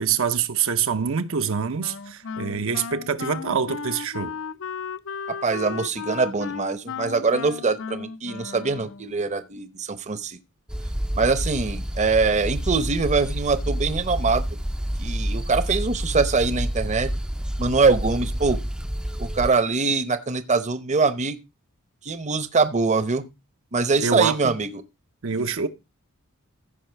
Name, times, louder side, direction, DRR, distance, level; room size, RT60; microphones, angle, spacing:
voice 1, 0.0-4.3 24.0-24.5 25.2-25.7, right 6 dB, 65° right, 0.7 m, -25 dB
Wind instrument woodwind instrument, 1.8-9.2, left 5 dB, 60° left, 0.5 m, -35 dB
voice 2, 5.3-10.4 11.1-14.4 15.0-17.1 17.6-18.6 19.2-21.4 22.0-23.2 23.7-24.8, right 4 dB, 35° right, 0.8 m, -23 dB
sound 1, 10.7-19.5, equal, 5° right, 0.5 m, -28 dB
15.0 x 5.5 x 4.4 m
head